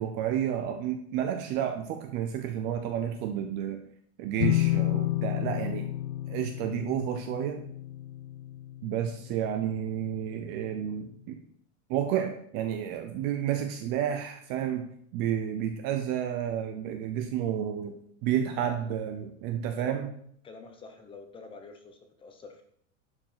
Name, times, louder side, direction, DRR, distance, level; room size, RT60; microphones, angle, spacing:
voice 1, 0.0-3.8 4.2-5.9 6.3-7.6 8.8-11.4 11.9-20.1, right 9 dB, 25° right, 6 dB, 0.5 m, -31 dB
sound 1, 4.4-10.0, left 15 dB, 35° left, 0.4 m, -31 dB
voice 2, 18.6-18.9 19.8-20.0 20.4-22.6, left 3 dB, 15° left, 6 dB, 0.9 m, -47 dB
11.0 x 5.3 x 5.7 m, 0.65 s
supercardioid pair, 165°, 39 cm